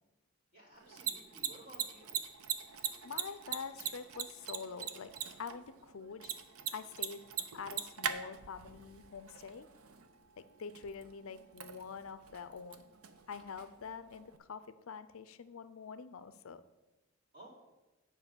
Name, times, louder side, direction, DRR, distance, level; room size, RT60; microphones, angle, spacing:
voice 1, 0.5-2.2 17.3-17.5, right 1 dB, 40° right, -6 dB, 3.6 m, -55 dB
Mechanisms, 0.7-14.4, right 8 dB, 90° right, 0.7 m, -43 dB
voice 2, 2.8-6.3 6.7-7.2 7.5-9.7 10.6-12.8 13.3-16.6, left 5 dB, 75° left, 12 dB, 0.5 m, -46 dB
9.5 x 4.8 x 6.8 m, 1.1 s
head